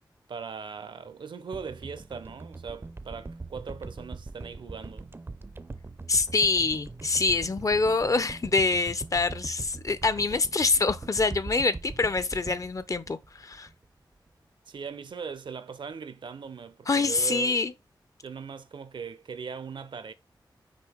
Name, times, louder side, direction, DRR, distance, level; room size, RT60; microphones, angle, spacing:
voice 1, 0.3-5.1 14.7-17.6 18.2-20.1, right 6 dB, 80° right, 0.7 m, -39 dB
sound 1, 1.5-13.8 14.2-14.3, right 3 dB, 30° right, 0.5 m, -42 dB
voice 2, 6.1-13.7 16.9-17.7, left 3 dB, 40° left, 0.7 m, -25 dB
6.2 x 4.7 x 3.5 m
wide cardioid pair, 85°, 8 cm